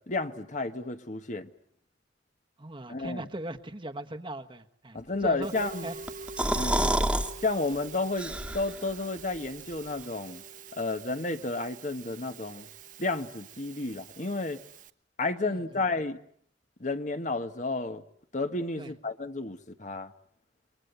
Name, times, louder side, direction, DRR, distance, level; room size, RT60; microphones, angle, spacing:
voice 1, 0.1-1.5 2.9-3.3 4.9-5.9 6.5-7.0 7.4-10.4 10.7-12.7 13.0-14.6 15.2-16.2 16.8-18.0 18.3-20.1, left 3 dB, 45° left, 1.3 m, -31 dB
voice 2, 2.6-5.5 5.8-6.0 15.4-15.8 18.8-18.9, right 1 dB, 30° right, 1.3 m, -39 dB
Musical instrument, 5.4-14.9, right 5 dB, 45° right, 1.1 m, -45 dB
sound 1, 6.1-7.3 7.7-7.8 8.2-8.8, right 1 dB, 5° right, 1.6 m, -27 dB
29.0 x 23.0 x 8.1 m
head